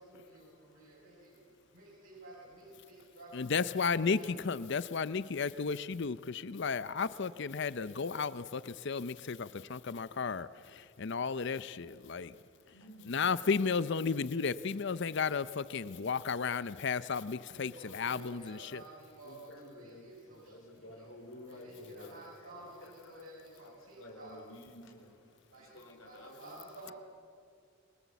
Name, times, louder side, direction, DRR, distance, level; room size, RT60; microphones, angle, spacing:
voice 1, 0.0-1.4 1.7-4.3 16.8-17.0 17.5-21.1 21.3-24.4 25.5-26.9, right 1 dB, 85° right, -5 dB, 5.9 m, -52 dB
voice 2, 3.3-12.3 13.1-18.8, left 5 dB, 55° left, 16 dB, 0.6 m, -33 dB
voice 3, 12.7-13.2 19.2-22.2 22.5-23.2 23.6-25.2 25.6-26.9, left 1 dB, 70° left, 1 dB, 4.3 m, -52 dB
28.0 x 19.5 x 8.2 m, 2.3 s
head